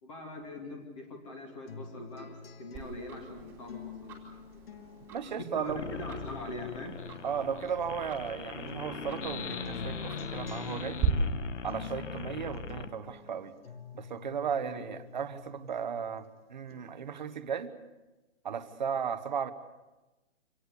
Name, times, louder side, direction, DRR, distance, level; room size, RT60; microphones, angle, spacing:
voice 1, 0.0-4.2 4.5-4.9 5.1-7.0 14.7-14.8, left 2 dB, 25° left, 3 dB, 2.6 m, -42 dB
sound 1, 1.7-8.3 8.7-16.3 16.7-17.7, left 4 dB, 50° left, 2.2 m, -48 dB
Tick-tock, 2.7-11.1, right 13 dB, 5° right, 2.8 m, -42 dB
voice 2, 5.1-5.8 7.2-11.0 11.6-13.5 13.9-16.2 16.5-17.8 18.4-19.5, right 7 dB, 35° right, 10 dB, 1.3 m, -35 dB
sound 2, 5.7-12.9, left 6 dB, 70° left, 1.6 m, -40 dB
26.5 x 18.5 x 8.3 m, 1.1 s
hypercardioid pair, 180°, 38 cm